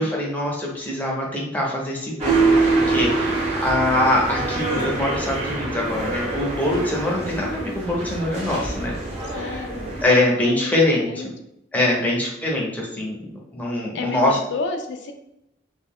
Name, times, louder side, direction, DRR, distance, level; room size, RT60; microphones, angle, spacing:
voice 1, 0.0-9.0 9.3-9.6 10.0-11.3 11.7-14.4, left 1 dB, 10° left, -3 dB, 0.6 m, -23 dB
sound 1, 2.2-10.0, right 1 dB, 35° right, 0.7 m, -28 dB
sound 2, 2.3-4.4, right 4 dB, 75° right, 0.7 m, -21 dB
voice 2, 9.3-9.9 10.4-11.3 13.9-15.1, left 3 dB, 70° left, 4 dB, 0.3 m, -31 dB
2.2 x 2.1 x 3.5 m, 0.81 s
head